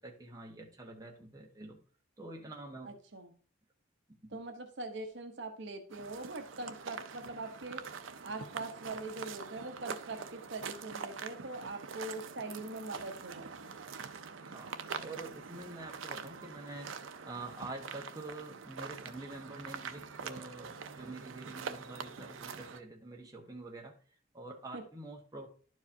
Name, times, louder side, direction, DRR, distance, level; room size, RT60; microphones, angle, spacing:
voice 1, 0.0-1.8 2.2-2.9 14.4-23.9 24.3-25.5, right 2 dB, 20° right, 0 dB, 1.2 m, -46 dB
voice 2, 2.8-3.3 4.3-7.8 8.2-13.7 24.7-24.8, right 2 dB, 65° right, 5 dB, 1.0 m, -42 dB
sound 1, 5.9-22.8, right 6 dB, 80° right, 0.6 m, -44 dB
11.5 x 4.8 x 2.7 m, 0.42 s
head